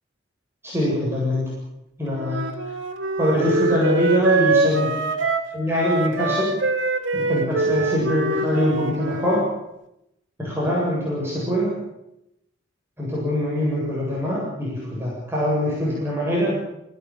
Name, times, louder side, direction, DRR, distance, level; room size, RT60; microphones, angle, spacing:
voice 1, 0.6-1.5 2.0-2.4 3.2-4.9 5.5-6.5 7.1-9.4 10.4-11.7 13.0-16.6, equal, 15° right, -6 dB, 7.9 m, -23 dB
Wind instrument woodwind instrument, 2.1-9.4, right 3 dB, 85° right, 3.4 m, -24 dB
26.5 x 17.0 x 9.0 m, 0.85 s
head